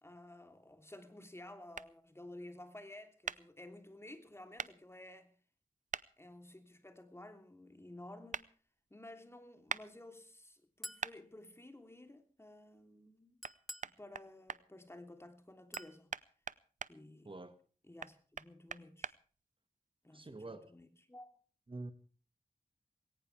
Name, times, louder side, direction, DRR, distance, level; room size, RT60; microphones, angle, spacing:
voice 1, 0.0-5.3 6.2-8.5 8.9-13.4 13.8-16.1 16.9-17.3 17.8-19.2 20.0-20.4 20.7-21.3, left 1 dB, 15° left, 3.3 m, -53 dB
sound 1, 1.7-1.9 3.3-3.4 4.6-4.7 5.9-6.1 8.3-8.5 9.7-9.8 11.0-11.2 13.4-13.5 13.8-14.6 15.7-16.9 18.0-19.1, right 5 dB, 60° right, 0.7 m, -41 dB
Chink clink, 10.8-11.1 13.4-14.0 15.7-16.0, equal, ahead, 0.8 m, -48 dB
voice 2, 17.3-17.6 20.1-20.7 21.7-21.9, right 2 dB, 35° right, 1.7 m, -46 dB
20.0 x 18.5 x 3.4 m
wide cardioid pair, 85°, 14 cm